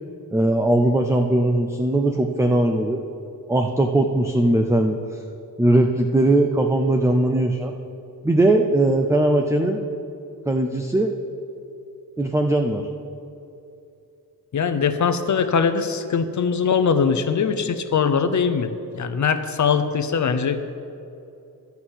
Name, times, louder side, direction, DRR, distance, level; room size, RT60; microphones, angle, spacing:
voice 1, 0.3-3.0 3.5-5.0 5.6-7.7 8.2-9.8 10.5-11.1 12.2-12.8, right 1 dB, 10° right, 4 dB, 0.4 m, -19 dB
voice 2, 14.5-20.7, left 6 dB, 50° left, 10 dB, 0.6 m, -21 dB
12.0 x 5.8 x 7.9 m, 2.7 s
wide cardioid pair, 155°, 39 cm